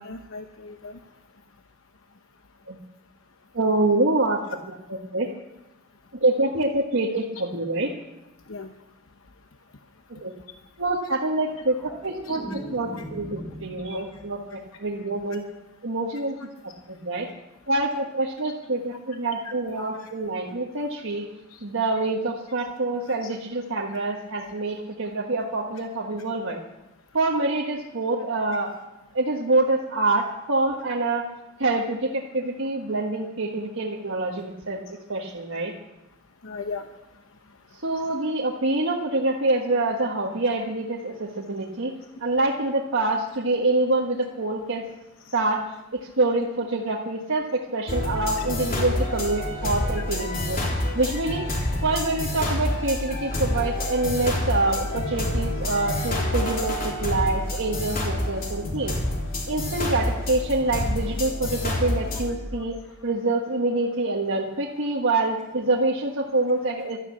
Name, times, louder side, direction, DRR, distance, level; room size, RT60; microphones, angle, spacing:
voice 1, 0.0-1.0 8.5-8.7 11.0-11.1 12.2-12.6 12.9-13.0 13.9-14.1 18.4-18.5 19.1-19.2 19.4-20.1 21.5-21.6 23.1-23.3 36.4-36.8 43.8-43.9 45.3-45.4 49.9-50.0 56.0-56.2, left 4 dB, 70° left, 5 dB, 0.9 m, -39 dB
voice 2, 3.5-4.4 4.9-5.3 6.1-7.9 10.1-10.3 10.8-15.4 15.8-16.3 16.6-17.3 17.7-21.3 21.6-26.6 27.1-28.7 29.1-31.2 31.6-34.8 35.1-35.7 37.8-41.9 42.2-44.8 45.3-45.6 46.2-47.5 47.7-50.6 50.9-51.5 51.8-58.9 59.5-62.8 63.0-67.0, right 2 dB, 65° right, -2 dB, 1.5 m, -26 dB
sound 1, 11.3-14.5 14.8-15.2, right 1 dB, ahead, 2.8 m, -39 dB
sound 2, 47.9-62.3, left 1 dB, 45° left, 3.4 m, -28 dB
13.0 x 12.0 x 8.4 m, 1.0 s
head